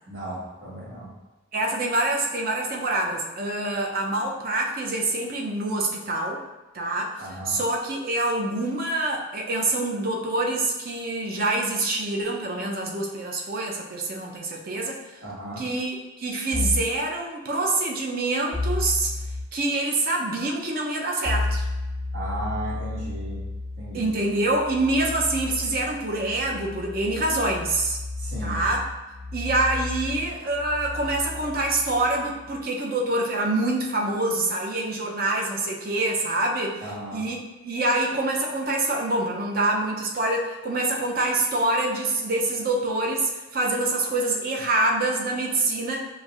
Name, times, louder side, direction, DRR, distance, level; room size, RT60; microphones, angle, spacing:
voice 1, 0.1-1.1 7.2-7.6 15.2-15.6 22.1-23.4 23.8-24.1 28.2-28.6 36.8-37.2, right 1 dB, 70° right, -7 dB, 1.5 m, -35 dB
voice 2, 1.5-6.4 6.7-15.2 15.6-19.1 19.5-21.7 23.9-28.0 28.4-28.8 29.3-36.8 37.1-46.1, right 2 dB, 50° right, 0 dB, 0.6 m, -26 dB
sound 1, 16.5-17.0 18.5-19.5 21.2-32.6, left 2 dB, ahead, 0.7 m, -32 dB
5.8 x 2.6 x 2.4 m, 1.1 s
head